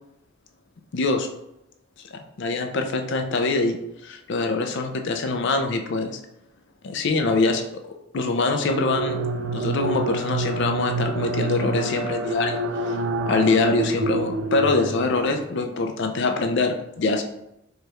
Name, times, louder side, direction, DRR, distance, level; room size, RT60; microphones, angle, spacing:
voice 1, 0.9-1.3 2.4-6.2 6.8-7.6 8.1-9.2 9.5-13.0 13.3-17.2, left 3 dB, 55° left, 5 dB, 0.4 m, -24 dB
Ghostly horn sound, 8.5-15.4, right 2 dB, 60° right, 0.3 m, -27 dB
4.7 x 2.3 x 3.0 m, 0.84 s
head